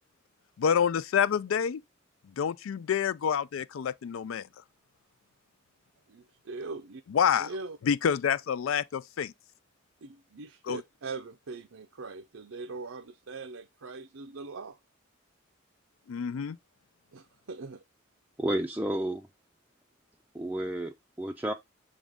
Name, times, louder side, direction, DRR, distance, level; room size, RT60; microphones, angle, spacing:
voice 1, 0.6-1.8 2.2-4.5 7.1-7.5 7.8-9.3 10.6-10.8 16.1-16.6, left 7 dB, 80° left, 0.4 m, -27 dB
voice 2, 6.1-7.0 7.4-7.8 10.0-14.8 17.1-17.8, right 3 dB, 85° right, 0.6 m, -41 dB
voice 3, 18.4-19.3 20.3-21.5, right 1 dB, 10° right, 0.4 m, -31 dB
7.1 x 3.7 x 3.6 m
head